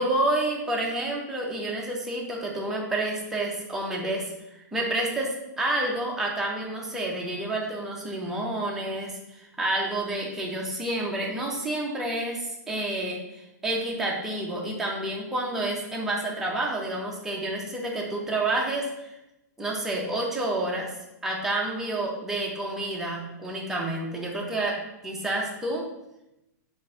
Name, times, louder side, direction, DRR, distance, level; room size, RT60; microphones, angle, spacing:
voice 1, 0.0-19.1 19.6-20.9 21.2-25.9, right 1 dB, 5° right, -3 dB, 0.6 m, -29 dB
4.5 x 2.5 x 4.7 m, 0.90 s
supercardioid pair, 170°, 9 cm